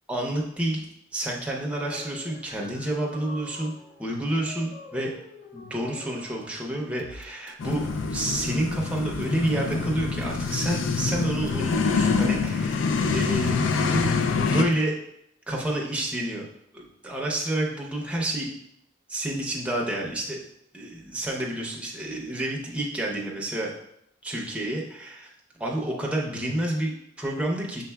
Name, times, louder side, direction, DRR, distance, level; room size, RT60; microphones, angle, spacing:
voice 1, 0.1-0.8 1.1-3.7 4.0-5.1 5.5-14.1 14.4-15.0 15.5-16.4 16.7-18.5 19.1-20.4 20.7-23.7 24.2-25.3 25.6-27.8, right 1 dB, 5° right, -2 dB, 0.6 m, -29 dB
sound 1, 1.8-7.0, left 2 dB, 40° left, 0.6 m, -47 dB
sound 2, 7.0-14.7, right 2 dB, 60° right, 0.3 m, -43 dB
sound 3, 7.6-14.6, left 4 dB, 80° left, 0.4 m, -26 dB
5.4 x 3.8 x 2.3 m, 0.75 s
head